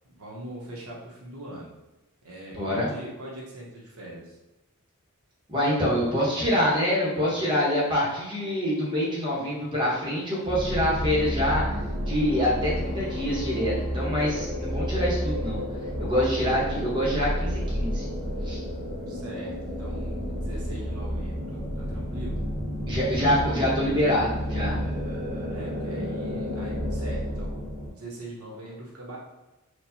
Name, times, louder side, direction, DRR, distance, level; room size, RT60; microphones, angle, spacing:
voice 1, 0.1-1.7 2.2-4.4 19.1-22.4 25.5-27.6 27.9-29.2, right 1 dB, 75° right, -3 dB, 1.0 m, -41 dB
voice 2, 2.5-2.9 5.5-11.8 12.1-15.6 16.0-18.0 18.4-18.6 22.9-24.8, equal, 20° right, -6 dB, 1.1 m, -25 dB
sound 1, 10.5-27.9, equal, 40° right, 0.7 m, -31 dB
4.4 x 2.3 x 2.8 m, 1.0 s
head